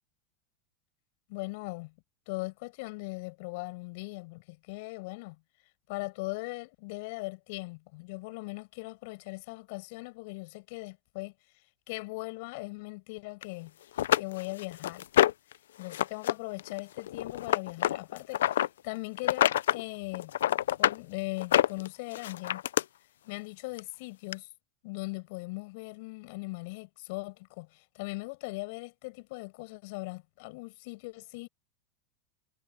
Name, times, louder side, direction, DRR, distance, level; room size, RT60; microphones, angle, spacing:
voice 1, 1.3-1.9 2.3-5.4 5.9-11.3 11.9-13.7 14.2-15.1 15.8-18.6 18.8-20.3 20.8-22.6 23.2-24.5 24.8-31.5, left 26 dB, 65° left, 6.8 m, -39 dB
sound 1, 13.4-13.5 14.0-15.5 15.9-16.3 16.6-18.7 19.2-19.8 20.1-21.0 21.4-22.8 23.8-23.9 24.3-24.4, left 12 dB, 85° left, 0.5 m, -26 dB
hypercardioid pair, 105°, 0 cm